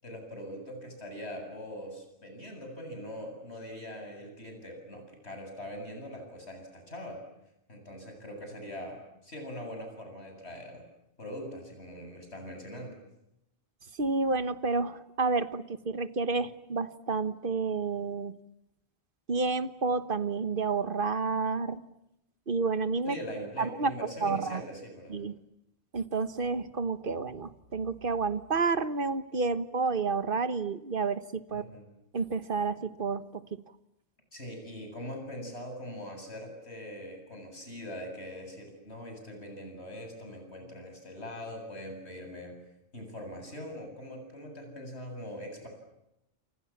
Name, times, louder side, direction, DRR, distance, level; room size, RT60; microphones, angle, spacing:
voice 1, 0.0-7.2 7.7-10.8 11.2-12.9 23.1-25.2 31.5-31.9 34.3-42.6 42.9-45.7, equal, 85° left, 4 dB, 8.5 m, -42 dB
voice 2, 14.0-18.4 19.3-21.8 22.5-23.2 23.6-24.6 25.1-25.4 25.9-31.6 32.1-33.4, right 4 dB, 55° right, 12 dB, 1.4 m, -30 dB
28.5 x 28.0 x 7.4 m, 0.86 s
omnidirectional pair, 1.1 m